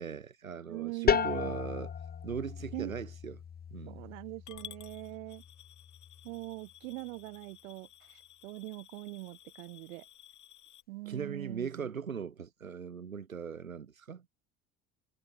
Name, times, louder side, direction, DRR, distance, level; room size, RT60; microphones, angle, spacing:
voice 1, 0.0-1.9 2.2-3.4 3.7-4.0 11.1-14.2, right 6 dB, 85° right, 7.7 m, -39 dB
voice 2, 0.7-1.6 2.7-2.9 3.9-5.4 6.2-10.1 10.9-11.9, right 23 dB, 70° right, 4.0 m, -42 dB
sound 1, 1.1-6.6, left 8 dB, 25° left, 0.8 m, -35 dB
Coin (dropping) / Glass, 4.5-10.8, left 12 dB, 45° left, 6.5 m, -54 dB
figure-of-eight pair, 60°, 40 cm